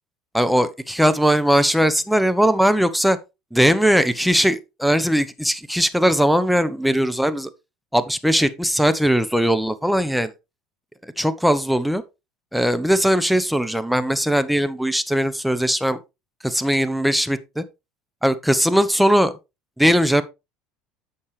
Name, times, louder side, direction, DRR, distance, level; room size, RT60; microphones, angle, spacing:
voice 1, 0.3-3.2 3.5-7.5 7.9-10.3 11.0-12.0 12.5-16.0 16.4-17.6 18.2-19.3 19.8-20.2, equal, ahead, 0.9 m, -19 dB
8.6 x 6.5 x 3.3 m
supercardioid pair, 90°, 2 cm